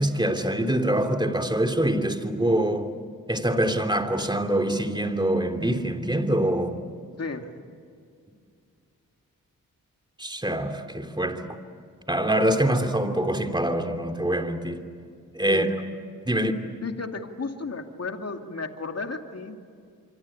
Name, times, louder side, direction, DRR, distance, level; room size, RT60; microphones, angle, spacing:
voice 1, 0.0-2.9 3.3-6.8 10.2-11.6 12.1-14.8 15.3-15.7 16.2-16.5, right 1 dB, 15° right, 3.0 m, -24 dB
voice 2, 7.2-7.5 15.5-15.7 16.8-19.6, left 3 dB, 45° left, 2.6 m, -33 dB
25.5 x 25.0 x 8.7 m
cardioid pair, 45°, 34 cm